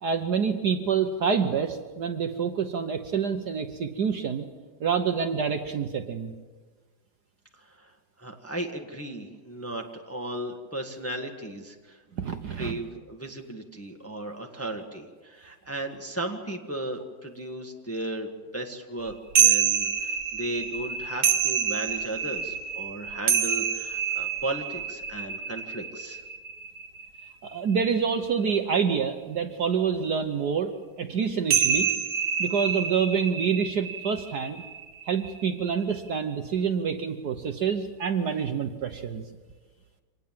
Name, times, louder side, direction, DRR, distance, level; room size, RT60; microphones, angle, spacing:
voice 1, 0.0-4.5 4.8-6.3 12.2-12.8 27.4-30.7 31.0-31.9 32.4-34.6 35.1-39.2, right 6 dB, 55° right, 7 dB, 1.4 m, -27 dB
voice 2, 7.6-7.9 8.2-12.0 12.6-26.2, right 1 dB, 10° left, 2 dB, 1.4 m, -35 dB
sound 1, 19.4-28.0 31.5-36.1, right 8 dB, 85° right, 2.1 m, -27 dB
25.0 x 19.0 x 7.5 m, 1.4 s
omnidirectional pair, 2.3 m